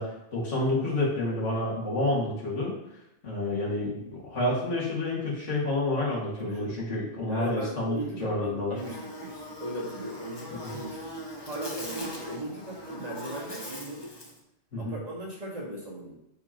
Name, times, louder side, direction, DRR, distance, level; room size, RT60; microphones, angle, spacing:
voice 1, 0.0-2.7 3.2-8.7 10.5-10.8 14.7-14.9, left 2 dB, 75° left, -5 dB, 2.3 m, -29 dB
voice 2, 6.4-6.8 7.3-11.1 11.5-14.1 14.8-16.2, right 1 dB, 35° right, -4 dB, 1.7 m, -38 dB
Buzz, 8.8-14.4, equal, 20° left, 1.0 m, -40 dB
7.7 x 5.0 x 2.9 m, 0.84 s
omnidirectional pair, 1.3 m